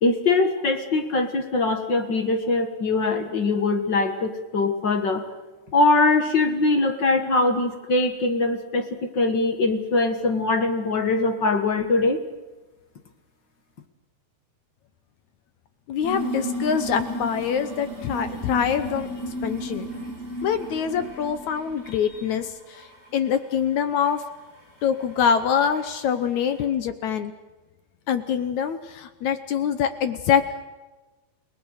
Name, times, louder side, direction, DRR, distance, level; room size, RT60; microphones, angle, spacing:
voice 1, 0.0-5.2 5.7-8.9 9.1-12.2, left 3 dB, 55° left, 6 dB, 1.3 m, -22 dB
voice 2, 15.9-19.1 19.4-19.9 20.4-22.5 23.1-24.2 24.8-27.3 28.1-30.6, left 8 dB, 70° left, 10 dB, 1.9 m, -24 dB
sound 1, 16.0-22.5 22.7-23.3 24.0-24.1 25.0-25.1 25.6-25.9, right 1 dB, 15° right, 7.4 m, -33 dB
30.0 x 19.5 x 6.5 m, 1.2 s
omnidirectional pair, 4.3 m